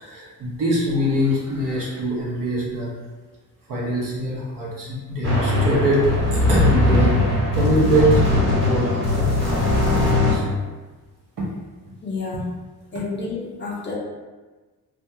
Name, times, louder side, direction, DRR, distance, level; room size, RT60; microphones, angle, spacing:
voice 1, 0.0-2.9 3.7-9.3 9.6-10.5 11.4-11.5, right 1 dB, 65° right, -5 dB, 1.0 m, -23 dB
sound 1, 5.2-10.3, left 2 dB, 35° right, 1.3 m, -19 dB
voice 2, 12.0-12.6 12.9-13.9, left 3 dB, 30° left, -3 dB, 0.6 m, -29 dB
2.6 x 2.3 x 2.7 m, 1.3 s
cardioid pair, 105°, 36 cm